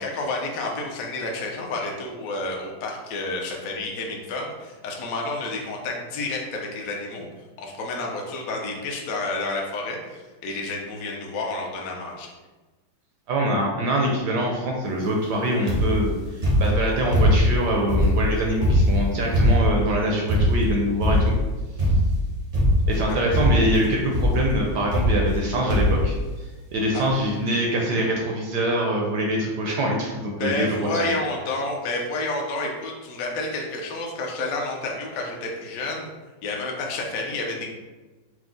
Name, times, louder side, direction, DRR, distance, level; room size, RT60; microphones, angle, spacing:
voice 1, 0.0-7.3 7.6-12.3 23.1-23.2 26.9-27.0 30.4-36.1 36.4-37.7, left 2 dB, 70° left, 0 dB, 0.8 m, -30 dB
voice 2, 13.3-21.3 22.9-31.1, right 1 dB, 75° right, -1 dB, 1.0 m, -24 dB
sound 1, 15.7-16.1 16.4-17.6 17.9-19.8 20.3-20.7 21.0-21.4 21.8-22.2 22.5-23.0 23.3-23.8 24.1-24.4 24.9-25.4 25.7-26.1 26.8-26.9 27.1-27.2, equal, 50° right, 0.4 m, -20 dB
4.6 x 2.0 x 3.8 m, 1.2 s
omnidirectional pair, 2.2 m